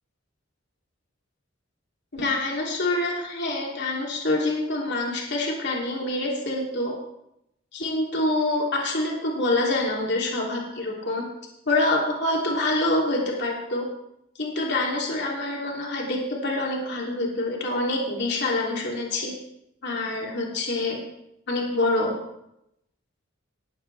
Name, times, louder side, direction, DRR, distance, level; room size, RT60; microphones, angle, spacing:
voice 1, 2.1-6.9 7.7-11.2 11.7-13.8 14.3-19.3 19.8-21.0 21.5-22.1, left 2 dB, 60° left, -2 dB, 3.1 m, -26 dB
18.5 x 14.0 x 3.4 m, 0.81 s
head